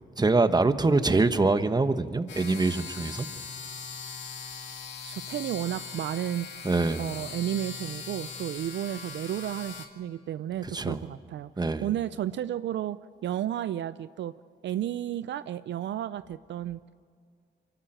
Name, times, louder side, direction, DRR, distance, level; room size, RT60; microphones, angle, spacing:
voice 1, 0.2-3.3 6.6-7.1 10.7-11.0 11.6-11.9, right 3 dB, 20° right, 11 dB, 1.1 m, -24 dB
sound 1, 2.3-9.9, left 6 dB, 75° left, 2.0 m, -40 dB
voice 2, 5.0-6.5 7.0-11.5 11.8-14.4 14.6-17.0, right 11 dB, 75° right, 14 dB, 0.5 m, -32 dB
24.0 x 13.0 x 9.1 m, 2.3 s
cardioid pair, 70°, 19 cm